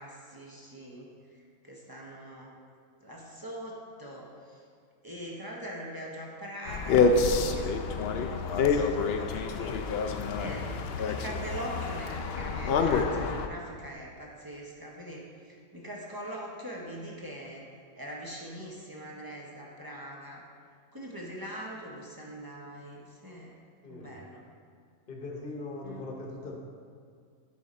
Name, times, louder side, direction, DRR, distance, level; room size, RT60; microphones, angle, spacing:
voice 1, 0.0-2.5 3.0-4.6 5.0-17.6 18.0-20.4 20.9-23.5 23.9-24.5 25.8-26.1, right 1 dB, 20° right, -3 dB, 0.6 m, -42 dB
sound 1, 6.7-13.5, left 4 dB, 75° left, 0.5 m, -27 dB
voice 2, 23.8-24.1 25.1-26.6, left 2 dB, 40° left, 0 dB, 1.0 m, -40 dB
8.7 x 5.1 x 4.1 m, 2.1 s
omnidirectional pair, 1.6 m